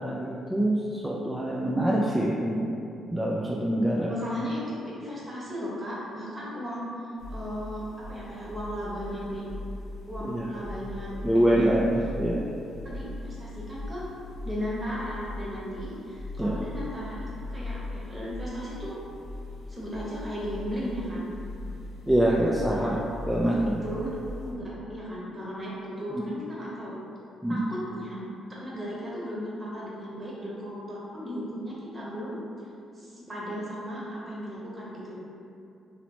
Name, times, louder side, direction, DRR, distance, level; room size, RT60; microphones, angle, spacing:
voice 1, 0.0-2.7 3.1-4.1 10.2-10.5 11.2-12.6 16.4-16.6 22.1-22.9 23.3-23.6 26.1-26.3 27.4-27.7, right 1 dB, 5° right, -5 dB, 0.3 m, -25 dB
voice 2, 4.0-4.6 4.9-6.9 7.3-9.4 10.1-11.8 12.8-14.0 14.4-19.0 19.7-21.3 22.8-23.0 23.8-24.1 24.4-26.9 27.5-28.2 28.5-32.4 32.9-35.2, equal, 30° right, -6 dB, 0.9 m, -36 dB
sound 1, 7.2-24.5, left 2 dB, 90° left, 0.5 m, -39 dB
2.9 x 2.0 x 2.9 m, 2.6 s
supercardioid pair, 60°, 0 cm